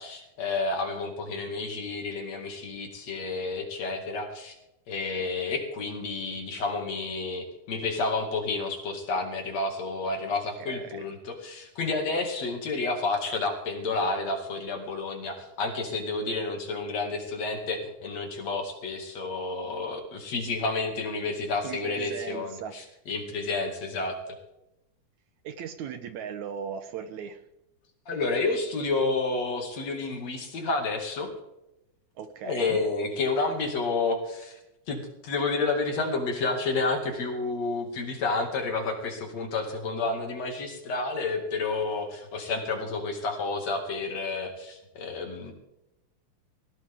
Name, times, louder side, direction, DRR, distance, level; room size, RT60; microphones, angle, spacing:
voice 1, 0.0-4.6 4.9-24.2 28.1-31.3 32.4-34.6 34.9-45.5, left 3 dB, 55° left, 3 dB, 3.3 m, -30 dB
voice 2, 10.6-11.1 21.6-22.7 25.4-27.4 32.2-32.8, right 7 dB, 70° right, 9 dB, 2.1 m, -38 dB
19.0 x 16.0 x 3.7 m, 0.89 s
omnidirectional pair, 3.8 m